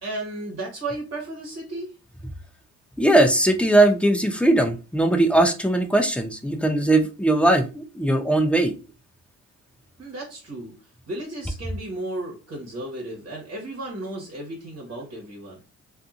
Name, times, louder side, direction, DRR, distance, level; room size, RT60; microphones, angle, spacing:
voice 1, 0.0-1.9 10.0-10.7 11.1-15.6, right 2 dB, 45° right, -1 dB, 1.2 m, -34 dB
voice 2, 3.0-8.7, right 1 dB, 5° left, 4 dB, 0.5 m, -19 dB
2.6 x 2.5 x 2.4 m, 0.31 s
cardioid pair, 90°, 30 cm